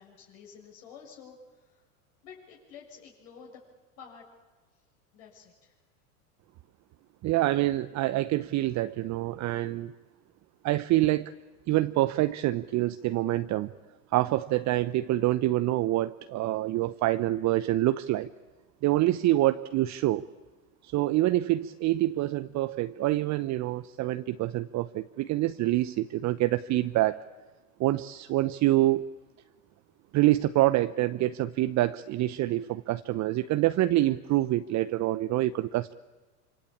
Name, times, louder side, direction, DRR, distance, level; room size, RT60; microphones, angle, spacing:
voice 1, 0.0-1.8 2.2-3.6 4.0-4.2 5.1-5.7, left 6 dB, 60° left, -2 dB, 6.9 m, -50 dB
voice 2, 7.2-9.9 10.6-11.3 11.7-13.7 14.1-18.3 18.8-20.2 20.8-27.2 27.8-29.1 30.1-35.9, right 16 dB, 40° right, 12 dB, 0.9 m, -26 dB
26.0 x 25.5 x 8.7 m, 1.3 s
hypercardioid pair, 95°, 45 cm